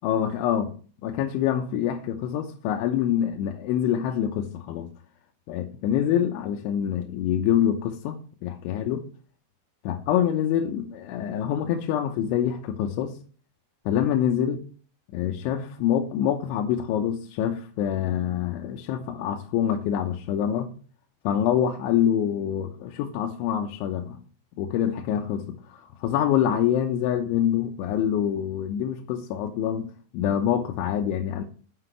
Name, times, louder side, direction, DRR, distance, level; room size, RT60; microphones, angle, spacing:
voice 1, 0.0-0.7 1.0-4.9 5.5-9.1 9.8-13.2 13.9-14.6 15.1-20.7 21.2-24.2 24.6-31.4, left 9 dB, 80° left, 3 dB, 3.2 m, -26 dB
7.8 x 6.1 x 7.9 m, 0.41 s
omnidirectional pair, 5.6 m